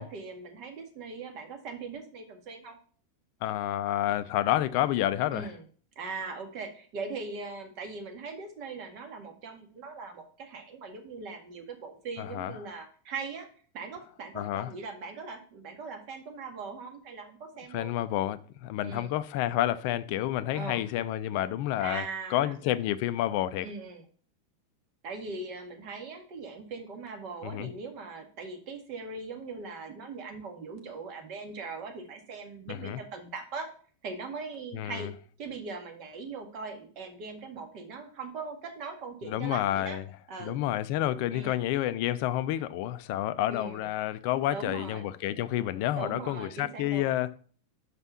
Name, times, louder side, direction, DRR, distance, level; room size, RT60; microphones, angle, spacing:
voice 1, 0.0-2.8 5.3-5.6 6.0-13.5 13.7-18.0 18.8-19.2 20.5-20.8 21.8-22.6 23.6-24.0 25.0-33.7 34.0-35.1 35.4-40.0 40.3-40.6 41.3-41.6 43.5-43.9 44.5-45.1 46.0-47.1, right 4 dB, 40° right, 1.8 m, -40 dB
voice 2, 3.4-5.5 12.2-12.6 14.3-14.7 17.7-22.0 22.3-23.7 27.4-27.7 32.7-33.0 34.7-35.1 39.3-40.0 40.4-47.3, left 13 dB, 45° left, 0.5 m, -29 dB
5.8 x 5.5 x 5.9 m
figure-of-eight pair, 90°, 0 cm